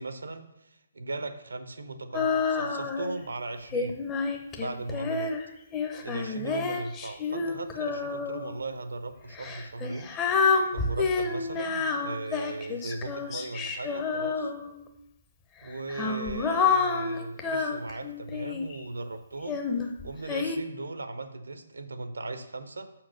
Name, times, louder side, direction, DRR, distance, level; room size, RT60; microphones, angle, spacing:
voice 1, 0.0-4.0 4.6-5.3 6.0-10.2 10.7-14.5 15.6-19.6 20.0-22.9, right 2 dB, 75° right, 10 dB, 0.7 m, -37 dB
Female singing, 2.1-3.2 3.7-8.5 9.3-14.9 15.6-18.8 19.5-20.6, left 4 dB, 20° left, 0.7 m, -29 dB
5.8 x 4.5 x 6.4 m, 0.90 s
figure-of-eight pair, 140°, 0 cm